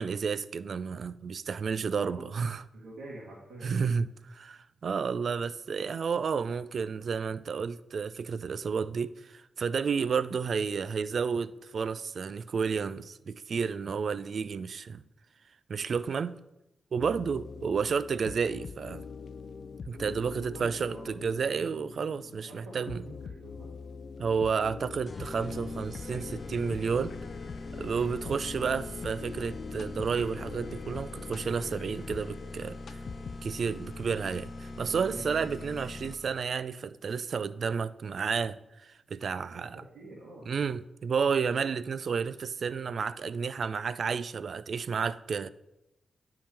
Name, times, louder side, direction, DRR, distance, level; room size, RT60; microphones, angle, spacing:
voice 1, 0.0-2.6 3.6-15.0 15.7-16.4 16.9-19.0 19.9-23.0 24.2-27.1 27.7-33.0 33.4-39.8 40.5-45.5, right 6 dB, 65° right, 0.3 m, -31 dB
voice 2, 1.7-2.3 2.7-3.9 20.5-21.2 22.4-23.7 27.9-28.1 35.1-35.4 39.5-39.6 39.9-40.5, right 1 dB, 85° right, 1.6 m, -46 dB
sound 1, 17.0-33.8, left 5 dB, 65° left, 0.4 m, -44 dB
sound 2, 25.1-36.4, left 2 dB, 40° left, 0.8 m, -42 dB
10.0 x 3.8 x 4.4 m
cardioid pair, 55°, 0 cm